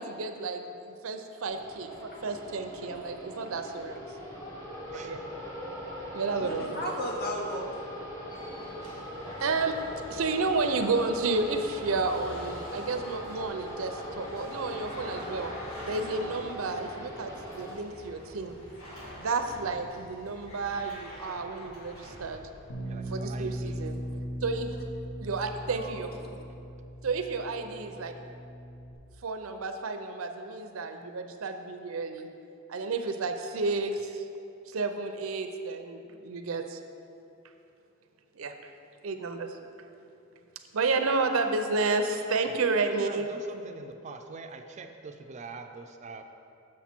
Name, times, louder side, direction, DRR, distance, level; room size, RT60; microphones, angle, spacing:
voice 1, 0.0-4.0 4.9-5.2 6.1-6.8 9.4-9.8 10.1-15.5 15.9-18.6 19.2-22.4 23.1-23.9 24.4-24.7 25.2-26.1 27.0-28.1 29.2-32.3 32.7-34.3 34.7-36.8 38.3-38.7 39.0-39.6 40.7-43.3, right 3 dB, 85° right, 7 dB, 0.6 m, -31 dB
sound 1, 1.5-17.7, equal, 15° left, 1.0 m, -41 dB
voice 2, 4.9-5.3 22.8-23.8 42.5-46.2, right 3 dB, 35° right, 6 dB, 0.4 m, -44 dB
voice 3, 6.4-7.8 23.7-24.1 25.8-26.1, equal, 50° left, 0 dB, 1.0 m, -36 dB
sound 2, 8.1-23.1, equal, 90° left, 1.8 m, -47 dB
Bass guitar, 22.7-28.9, equal, 70° left, 1.0 m, -39 dB
7.3 x 6.3 x 4.4 m, 2.6 s
head